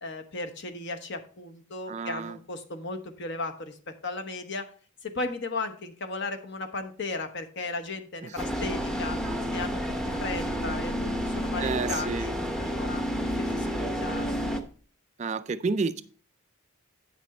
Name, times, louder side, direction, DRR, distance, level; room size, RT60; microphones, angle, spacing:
voice 1, 0.0-4.7 5.0-9.2 9.5-14.4, left 3 dB, 50° left, 6 dB, 1.0 m, -36 dB
voice 2, 1.9-2.4 8.2-8.3 11.6-12.3 15.2-16.0, right 4 dB, 30° right, 13 dB, 0.3 m, -30 dB
sound 1, 8.4-14.6, equal, ahead, 0.7 m, -30 dB
8.8 x 6.1 x 4.2 m, 0.41 s
head